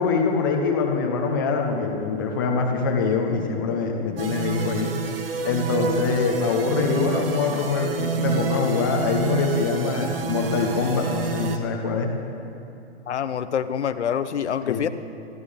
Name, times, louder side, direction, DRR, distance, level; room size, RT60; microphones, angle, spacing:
voice 1, 0.0-4.9 5.4-12.1 14.6-14.8, left 4 dB, 20° left, 2 dB, 1.0 m, -24 dB
sound 1, 4.2-11.6, right 5 dB, 55° right, 1.3 m, -29 dB
voice 2, 13.1-14.9, left 8 dB, 80° left, 11 dB, 0.8 m, -26 dB
27.0 x 12.5 x 3.5 m, 2.8 s
hypercardioid pair, 175°, 34 cm